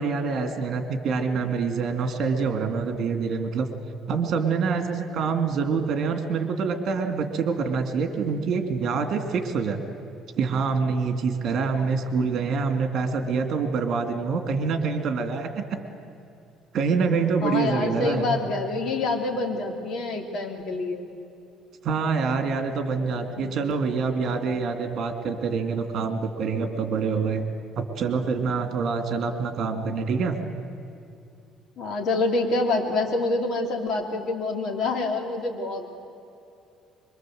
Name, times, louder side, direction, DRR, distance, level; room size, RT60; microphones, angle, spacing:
voice 1, 0.0-3.7 4.1-9.8 10.4-15.6 16.7-18.4 21.8-27.5 27.7-30.4, right 5 dB, 50° right, 6 dB, 2.5 m, -26 dB
voice 2, 17.4-21.1 23.4-23.6 31.8-35.9, left 3 dB, 50° left, 1 dB, 3.6 m, -27 dB
24.5 x 23.0 x 7.9 m, 2.6 s
cardioid pair, 135°, 0 cm